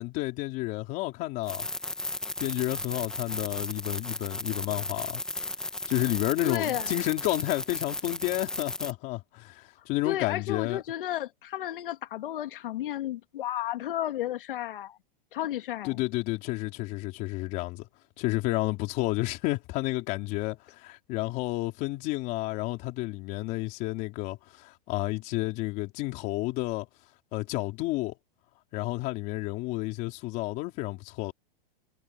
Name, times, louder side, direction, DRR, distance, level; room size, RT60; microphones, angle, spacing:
voice 1, 0.0-1.7 2.4-5.2 5.9-10.8 15.8-17.9 18.2-26.9 27.3-28.1 28.7-31.3, left 19 dB, 30° left, 3.8 m, -31 dB
sound 1, 1.5-8.9, left 2 dB, ahead, 0.8 m, -35 dB
voice 2, 6.4-6.9 10.0-15.0 15.3-16.0, left 12 dB, 65° left, 2.2 m, -33 dB
supercardioid pair, 170°, 29 cm